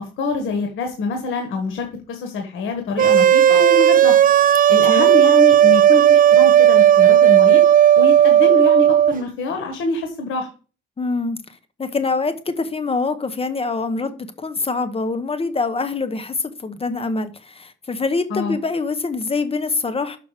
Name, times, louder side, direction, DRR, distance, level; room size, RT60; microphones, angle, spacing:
voice 1, 0.0-4.1 4.7-7.6 8.0-10.5 18.3-18.6, left 3 dB, 80° left, 1.5 m, -25 dB
sound 1, 3.0-9.1, right 10 dB, 45° right, 0.4 m, -13 dB
voice 2, 11.0-11.4 11.8-20.2, left 3 dB, 30° left, 1.0 m, -24 dB
6.4 x 5.9 x 4.9 m
cardioid pair, 90°, 20 cm